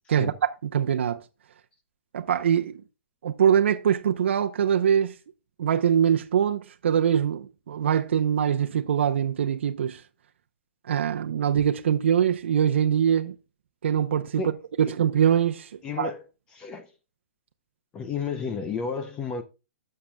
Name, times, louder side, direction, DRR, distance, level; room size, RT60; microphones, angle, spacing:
voice 1, 0.0-0.4 14.4-14.5 14.8-14.9 15.8-16.2 16.5-16.9 17.9-19.4, left 5 dB, 10° left, 0.5 m, -32 dB
voice 2, 0.7-1.2 2.1-2.7 3.2-5.1 5.6-10.0 10.9-13.4 13.8-14.4 14.8-16.1, right 8 dB, 65° right, 0.7 m, -23 dB
11.5 x 6.6 x 2.2 m
hypercardioid pair, 175°, 7 cm